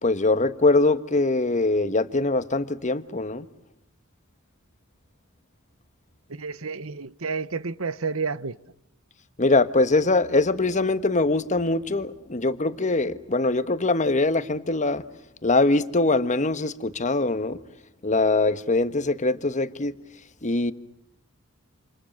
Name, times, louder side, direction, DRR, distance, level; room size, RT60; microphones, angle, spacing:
voice 1, 0.0-3.4 9.4-15.0 15.4-17.6 18.0-19.9 20.4-20.7, left 2 dB, 35° left, 1.4 m, -22 dB
voice 2, 6.3-8.6, right 4 dB, 75° right, 1.1 m, -30 dB
28.5 x 28.5 x 6.6 m
head